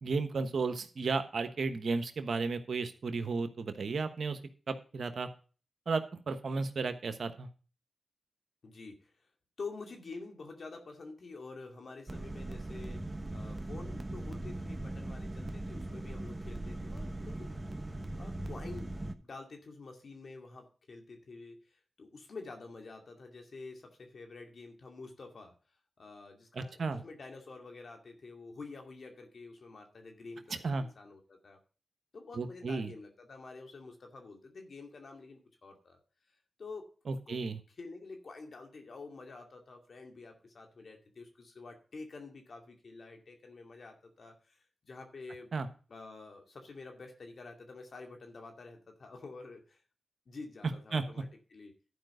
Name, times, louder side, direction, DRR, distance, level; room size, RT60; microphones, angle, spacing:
voice 1, 0.0-4.4 4.7-5.3 5.9-7.5 26.5-27.0 30.6-30.9 32.3-32.9 37.1-37.6 45.5-45.7 50.9-51.2, right 4 dB, 70° right, 9 dB, 1.1 m, -34 dB
voice 2, 8.6-9.1 9.6-13.0 13.3-18.9 19.2-21.6 22.0-25.5 26.0-31.6 32.1-36.0 36.6-36.9 37.3-37.4 37.8-44.6 44.8-45.5 45.9-49.8 50.3-51.7, left 3 dB, 65° left, 3 dB, 2.3 m, -48 dB
sound 1, 12.1-19.1, right 1 dB, 30° right, 1.1 m, -40 dB
12.0 x 5.1 x 6.5 m, 0.38 s
cardioid pair, 40°, 0 cm